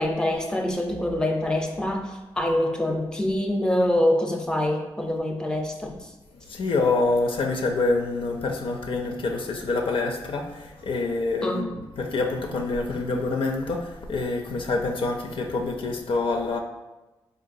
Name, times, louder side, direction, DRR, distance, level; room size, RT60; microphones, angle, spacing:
voice 1, 0.0-6.1 11.4-11.7, left 1 dB, 10° left, 3 dB, 0.6 m, -25 dB
voice 2, 6.5-16.6, left 3 dB, 60° left, 2 dB, 0.4 m, -26 dB
3.8 x 2.3 x 2.6 m, 1.1 s
supercardioid pair, 45°, 10 cm